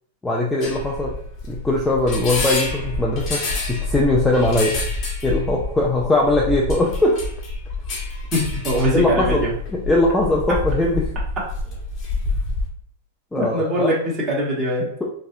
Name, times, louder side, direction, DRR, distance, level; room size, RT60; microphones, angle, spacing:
voice 1, 0.2-1.1 1.5-3.4 3.7-4.8 5.2-7.2 8.9-9.4 9.9-11.1 13.3-13.9 15.0-15.1, left 2 dB, 10° left, -3 dB, 0.5 m, -20 dB
sound 1, 0.6-12.7, left 2 dB, 40° left, 1.3 m, -27 dB
voice 2, 8.3-9.5 13.3-14.9, equal, 25° right, -4 dB, 1.3 m, -22 dB
4.1 x 2.3 x 2.7 m, 0.65 s
hypercardioid pair, 115°, 0 cm